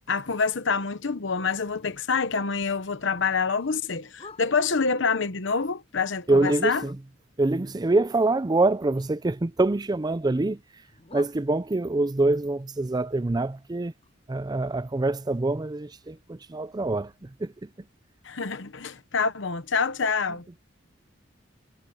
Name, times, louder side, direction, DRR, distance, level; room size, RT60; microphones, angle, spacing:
voice 1, 0.1-6.8 18.2-20.5, left 5 dB, 70° left, 1.0 m, -26 dB
Bark, 1.6-4.8 5.2-7.1 7.6-9.4 9.7-12.0 12.5-16.4 16.7-16.8 17.1-17.5 17.9-18.0 18.4-18.5 19.0-19.1, left 3 dB, 30° left, 7.4 m, -51 dB
voice 2, 6.3-7.0 7.4-10.6 11.1-13.9 14.3-17.7, right 2 dB, 20° right, 0.5 m, -25 dB
head